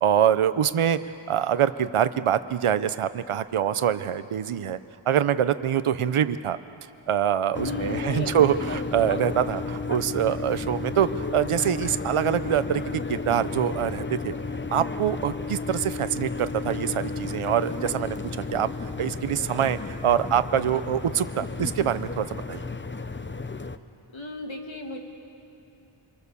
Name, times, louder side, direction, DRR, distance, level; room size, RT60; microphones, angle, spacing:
voice 1, 0.0-1.0 1.3-4.8 5.1-6.6 7.1-14.3 14.7-18.2 18.5-18.7 19.0-22.6, right 9 dB, 80° right, 12 dB, 0.7 m, -24 dB
sound 1, 7.5-23.8, left 4 dB, 25° left, 0.8 m, -33 dB
voice 2, 7.6-8.4 24.1-25.0, left 2 dB, 65° left, 2 dB, 2.6 m, -35 dB
27.5 x 23.5 x 6.9 m, 2.7 s
wide cardioid pair, 70°, 50 cm